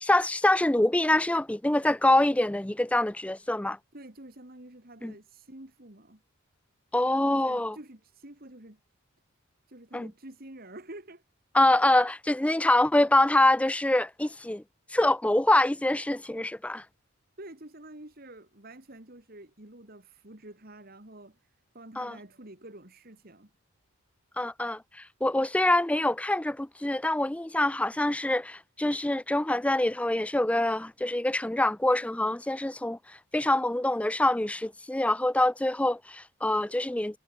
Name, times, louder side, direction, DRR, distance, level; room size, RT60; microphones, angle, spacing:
voice 1, 0.0-3.8 5.0-5.1 6.9-7.8 9.9-10.1 11.5-14.6 14.9-16.8 22.0-22.2 24.4-37.2, left 1 dB, 5° left, 0.3 m, -25 dB
voice 2, 3.9-6.2 7.3-8.8 9.7-11.2 17.4-23.5, right 1 dB, 45° right, 2.3 m, -48 dB
head